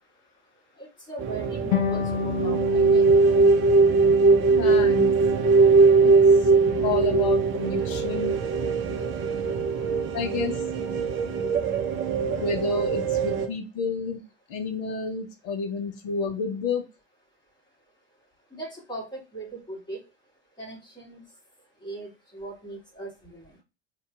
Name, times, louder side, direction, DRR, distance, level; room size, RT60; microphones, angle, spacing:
voice 1, 0.8-3.0 18.5-20.0 20.6-21.2 21.8-23.5, right 2 dB, 15° left, -4 dB, 2.6 m, -39 dB
sound 1, 1.2-13.5, right 4 dB, 35° right, 0.8 m, -21 dB
sound 2, 1.7-4.8, left 8 dB, 65° left, 0.8 m, -31 dB
voice 2, 4.6-5.1 6.0-6.5 6.8-8.4 10.1-10.6 12.4-14.2 14.5-16.9, left 4 dB, 45° left, 5 dB, 1.1 m, -30 dB
4.3 x 2.9 x 3.5 m, 0.28 s
figure-of-eight pair, 75°, 33 cm